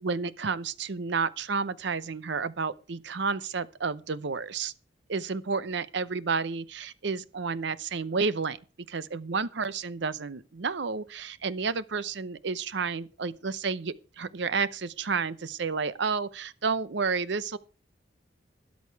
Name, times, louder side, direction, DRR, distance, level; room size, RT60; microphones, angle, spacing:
voice 1, 0.0-4.7 5.1-8.6 8.9-17.6, right 5 dB, 65° right, 0.7 m, -31 dB
13.0 x 10.5 x 4.6 m
head